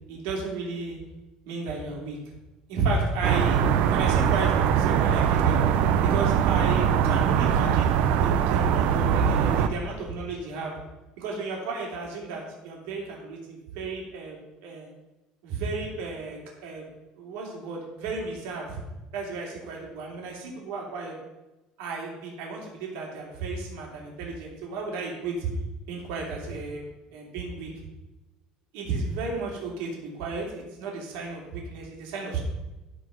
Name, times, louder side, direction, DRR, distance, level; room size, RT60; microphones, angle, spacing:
voice 1, 0.1-1.0 1.4-2.2 2.7-3.6 3.9-5.6 6.0-10.8 11.2-14.9 15.4-16.8 17.2-18.8 19.1-21.2 21.8-25.5 25.9-26.8 27.1-27.7 28.7-32.4, right 3 dB, 90° right, -1 dB, 3.0 m, -33 dB
sound 1, 3.2-9.7, right 8 dB, 60° right, 0.7 m, -22 dB
13.0 x 4.7 x 5.9 m, 1.0 s
cardioid pair, 175°, 3 cm